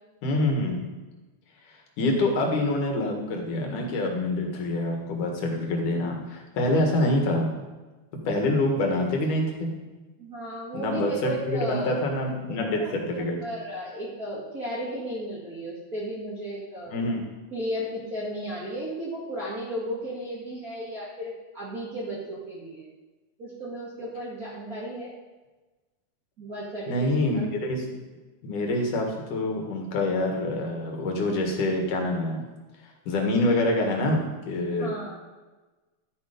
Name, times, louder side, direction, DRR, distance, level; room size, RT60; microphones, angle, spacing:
voice 1, 0.2-0.8 1.7-7.6 8.1-9.9 10.7-13.5 16.9-17.3 26.9-27.8 28.4-32.4 33.1-35.2, left 1 dB, 85° left, 2 dB, 3.4 m, -26 dB
voice 2, 10.2-12.0 12.5-17.0 17.5-22.9 23.4-25.1 26.4-27.5 34.8-35.2, equal, 30° right, -8 dB, 2.2 m, -34 dB
12.5 x 8.9 x 5.2 m, 1.2 s
omnidirectional pair, 3.5 m